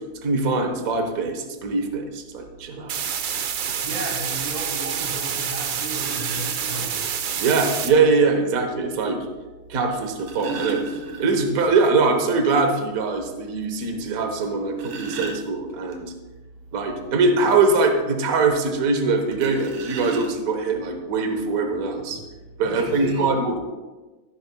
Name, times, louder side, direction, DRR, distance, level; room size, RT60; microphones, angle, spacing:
voice 1, 0.2-3.0 7.4-9.2 9.7-10.8 11.2-16.1 16.7-22.2 22.6-23.6, right 4 dB, 45° right, 5 dB, 1.4 m, -22 dB
sound 1, 2.9-7.9, right 8 dB, 75° right, 1.6 m, -28 dB
voice 2, 3.5-7.2 22.6-23.4, equal, 20° right, -3 dB, 1.4 m, -34 dB
sound 2, 6.0-6.6 8.0-8.1 9.9-11.7 12.0-12.1 12.5-12.6 13.1-13.2 14.4-16.0 19.3-20.7 21.5-21.6 22.0-22.2, right 3 dB, 90° right, 2.3 m, -34 dB
13.5 x 11.5 x 2.3 m, 1.2 s
omnidirectional pair, 2.4 m